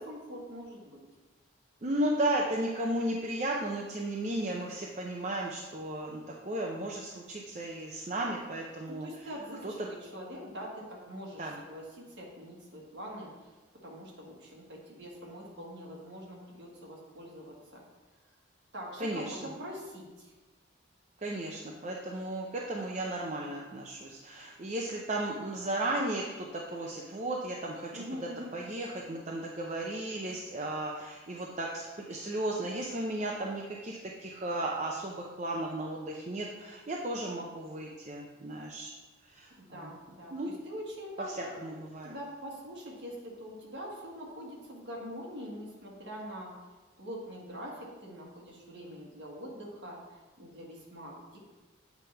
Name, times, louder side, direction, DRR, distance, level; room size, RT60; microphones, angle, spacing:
voice 1, 0.1-1.0 8.9-17.8 18.7-20.3 27.9-28.5 39.6-41.5 42.0-46.5 47.0-51.4, equal, 60° right, -3 dB, 1.7 m, -44 dB
voice 2, 1.8-9.1 11.4-11.6 19.0-19.5 21.2-28.0 28.5-38.9 39.3-39.5 39.8-39.9 40.3-40.5 41.4-42.1, right 1 dB, 35° right, -2 dB, 0.6 m, -34 dB
8.1 x 3.3 x 5.6 m, 1.2 s
head